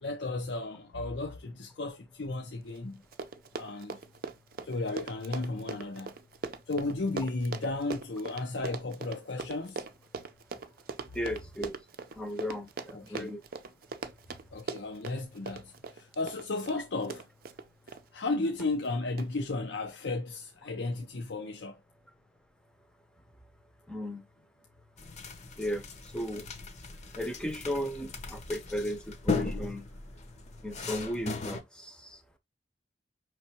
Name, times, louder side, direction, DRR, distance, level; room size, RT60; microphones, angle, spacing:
voice 1, 0.0-3.0 3.5-4.0 4.6-6.1 6.7-9.8 12.9-13.4 14.5-17.2 18.1-21.8, left 2 dB, 65° left, 0.7 m, -34 dB
Run, 2.7-2.8 3.0-18.0 18.6-18.9 19.2-19.3, right 4 dB, 55° right, 0.5 m, -40 dB
voice 2, 11.1-11.7 12.2-13.4 23.9-24.2 25.6-25.8 26.1-26.4 27.2-29.8 30.6-31.9, equal, 5° left, 0.7 m, -35 dB
sound 1, 25.0-31.6, left 3 dB, 40° left, 0.8 m, -37 dB
5.3 x 3.2 x 2.8 m
head